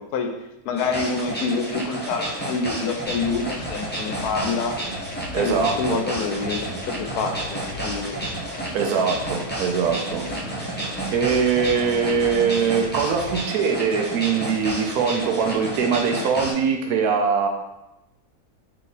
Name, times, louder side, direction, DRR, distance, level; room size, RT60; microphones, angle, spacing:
voice 1, 0.6-4.8 5.3-8.2, left 4 dB, 85° left, 4 dB, 1.1 m, -27 dB
sound 1, 0.8-16.5, right 1 dB, 15° left, 0.3 m, -31 dB
sound 2, 3.0-13.4, equal, 65° left, 0.9 m, -37 dB
voice 2, 5.3-6.0 8.7-10.2 11.1-17.5, right 6 dB, 80° right, 4 dB, 1.1 m, -22 dB
3.3 x 3.0 x 3.9 m, 0.92 s
omnidirectional pair, 1.6 m